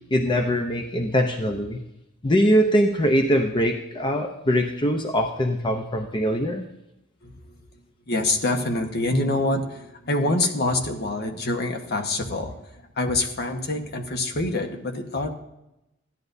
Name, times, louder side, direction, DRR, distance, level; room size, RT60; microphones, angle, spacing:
voice 1, 0.1-1.8 2.2-6.6, equal, 25° left, 4 dB, 0.7 m, -22 dB
voice 2, 7.2-15.3, left 2 dB, 55° left, 4 dB, 1.2 m, -26 dB
15.0 x 11.0 x 2.7 m, 0.89 s
head